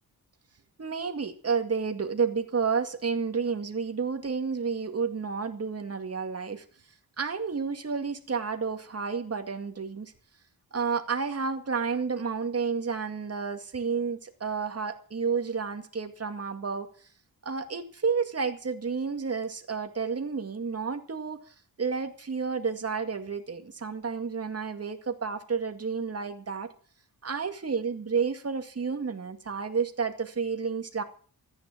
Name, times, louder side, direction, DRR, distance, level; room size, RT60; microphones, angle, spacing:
voice 1, 0.8-6.7 7.2-10.1 10.7-16.9 17.4-26.7 27.2-31.0, right 5 dB, 40° right, 6 dB, 2.2 m, -31 dB
14.5 x 9.6 x 7.4 m, 0.43 s
wide cardioid pair, 130°, 37 cm